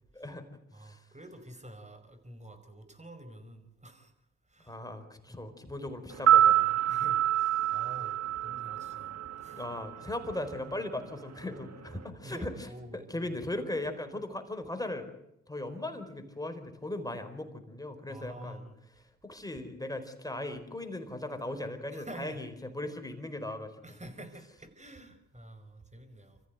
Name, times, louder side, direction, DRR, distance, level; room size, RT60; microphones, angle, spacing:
voice 1, 0.7-4.1 4.5-4.8 5.3-5.5 6.9-9.6 10.0-10.1 12.2-13.3 18.1-18.7 21.9-22.4 23.8-26.4, right 1 dB, 20° right, 9 dB, 5.0 m, -48 dB
voice 2, 4.7-6.8 9.5-12.7 12.9-15.1 15.5-18.6 19.2-23.7, left 1 dB, 10° left, 7 dB, 4.6 m, -38 dB
sound 1, 6.1-10.3 10.5-10.7, right 11 dB, 55° right, 1.6 m, -26 dB
25.5 x 14.5 x 9.4 m, 0.81 s
supercardioid pair, 55°, 31 cm